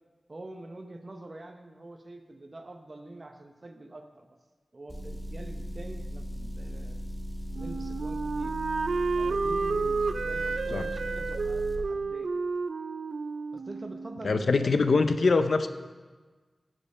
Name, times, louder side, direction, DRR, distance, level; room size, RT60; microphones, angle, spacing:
voice 1, 0.3-4.3 4.7-7.0 7.5-8.5 9.2-12.3 13.5-14.7, right 2 dB, 40° right, 4 dB, 0.8 m, -45 dB
Motor vehicle (road) / Engine, 4.9-11.8, equal, 5° right, 1.3 m, -37 dB
Wind instrument woodwind instrument, 7.5-14.4, right 4 dB, 80° right, 0.4 m, -31 dB
voice 2, 14.2-15.7, left 4 dB, 70° left, 10 dB, 0.6 m, -23 dB
16.0 x 5.3 x 5.5 m, 1.3 s
wide cardioid pair, 105°, 0 cm